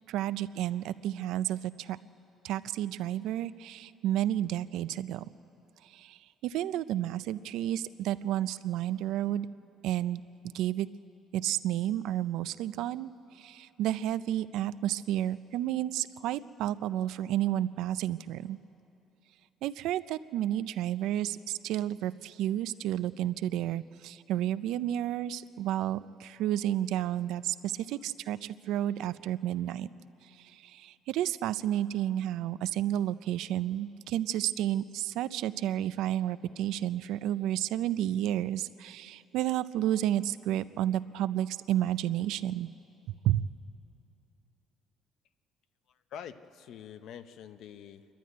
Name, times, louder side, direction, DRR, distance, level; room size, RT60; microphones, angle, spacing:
voice 1, 0.1-2.0 2.4-5.2 5.9-6.2 6.4-9.5 9.8-10.2 10.5-10.9 11.3-13.1 13.4-18.6 19.6-21.4 21.6-29.9 30.5-42.7 43.2-43.4, right 12 dB, 75° right, 15 dB, 0.4 m, -31 dB
voice 2, 45.9-48.1, left 8 dB, 55° left, 11 dB, 0.7 m, -46 dB
27.5 x 12.0 x 9.4 m, 2.9 s
cardioid pair, 180°, 0 cm